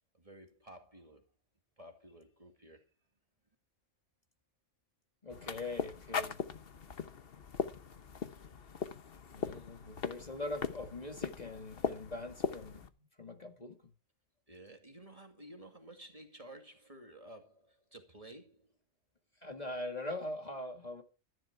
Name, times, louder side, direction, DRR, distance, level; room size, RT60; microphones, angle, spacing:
voice 1, 0.1-1.3 1.8-2.8 14.5-18.7 19.7-19.9, right 1 dB, 30° right, 2.3 m, -53 dB
voice 2, 5.2-6.4 9.3-12.9 13.2-13.7 19.4-21.0, left 2 dB, 35° left, 2.1 m, -42 dB
sound 1, 5.3-12.9, left 6 dB, 55° left, 1.2 m, -40 dB
13.5 x 11.5 x 4.7 m
omnidirectional pair, 1.3 m